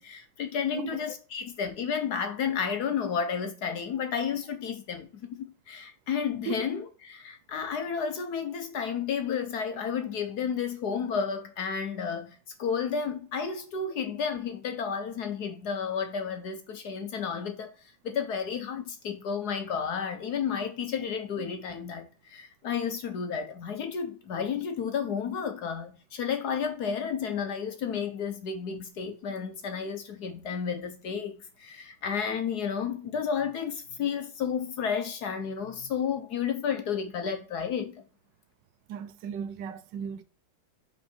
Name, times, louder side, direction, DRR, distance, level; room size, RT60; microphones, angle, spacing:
voice 1, 0.0-17.7 18.0-37.9, left 7 dB, 60° left, 1.1 m, -32 dB
voice 2, 38.9-40.2, right 8 dB, 70° right, 1.1 m, -36 dB
5.6 x 4.6 x 4.4 m
omnidirectional pair, 2.4 m